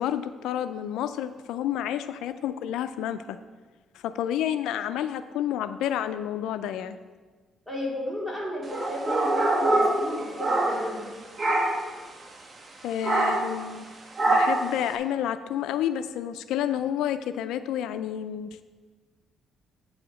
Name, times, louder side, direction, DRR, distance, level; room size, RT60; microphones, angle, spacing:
voice 1, 0.0-3.4 3.9-7.0 12.8-13.9 14.3-18.6, left 10 dB, 90° left, 11 dB, 0.3 m, -30 dB
voice 2, 7.7-11.2, left 1 dB, ahead, -5 dB, 3.1 m, -34 dB
sound 1, 8.7-11.1 11.4-11.9 13.0-13.6 14.2-14.8, right 2 dB, 35° right, 1.2 m, -24 dB
8.9 x 4.8 x 6.3 m, 1.4 s
cardioid pair, 90°, 0 cm